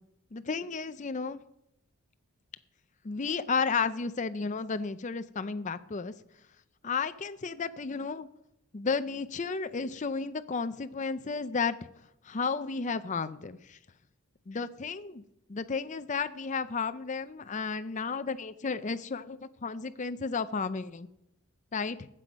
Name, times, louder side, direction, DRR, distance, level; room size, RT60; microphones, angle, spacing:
voice 1, 0.3-1.4 3.0-6.1 6.8-8.3 8.7-11.7 12.2-13.8 14.5-15.2 15.5-21.1 21.7-22.1, left 5 dB, 35° left, 11 dB, 0.5 m, -33 dB
19.5 x 7.7 x 5.2 m, 0.83 s
head